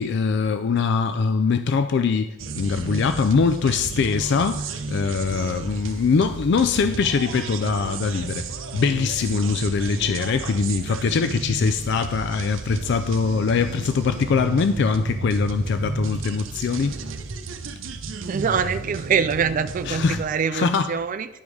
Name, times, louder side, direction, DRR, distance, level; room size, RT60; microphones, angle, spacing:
voice 1, 0.0-2.3 2.6-8.5 8.7-17.0 19.9-20.2 20.5-20.9, left 5 dB, 65° left, 0.4 m, -22 dB
sound 1, 2.4-20.2, right 3 dB, 80° right, 0.7 m, -32 dB
voice 2, 18.3-21.3, right 6 dB, 45° right, 0.3 m, -24 dB
10.5 x 5.2 x 4.7 m
head